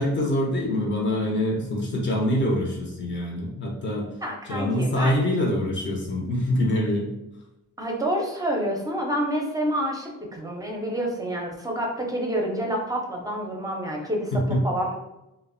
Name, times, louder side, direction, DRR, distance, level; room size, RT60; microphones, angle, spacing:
voice 1, 0.0-4.1 4.5-7.1 14.3-14.6, left 1 dB, 40° left, -1 dB, 0.6 m, -25 dB
voice 2, 4.2-5.2 7.8-15.0, equal, 10° right, 0 dB, 0.6 m, -28 dB
2.5 x 2.1 x 2.5 m, 0.91 s
cardioid pair, 90°, 30 cm